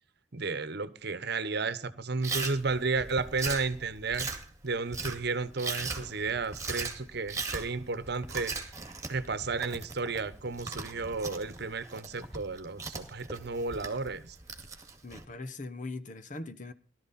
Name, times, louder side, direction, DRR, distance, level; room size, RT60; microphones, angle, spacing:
voice 1, 0.3-4.3 4.6-8.5 9.1-14.4, right 4 dB, 60° right, 1.0 m, -33 dB
Chewing mastication, 2.2-15.2, right 4 dB, 15° right, 2.2 m, -39 dB
voice 2, 15.0-16.7, left 2 dB, 45° left, 1.0 m, -40 dB
18.0 x 12.5 x 4.2 m
head